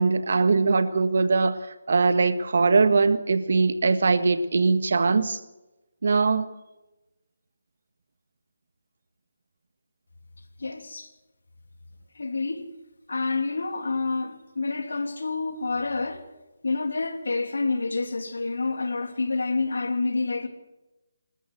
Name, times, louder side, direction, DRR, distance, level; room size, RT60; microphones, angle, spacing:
voice 1, 0.0-1.6 1.9-5.4 6.0-6.5, right 4 dB, 65° right, 1.6 m, -21 dB
voice 2, 10.6-11.1 12.1-12.7 13.1-16.2 16.6-20.5, left 3 dB, 80° left, 3.1 m, -28 dB
27.5 x 13.5 x 7.8 m
hypercardioid pair, 160°, 0 cm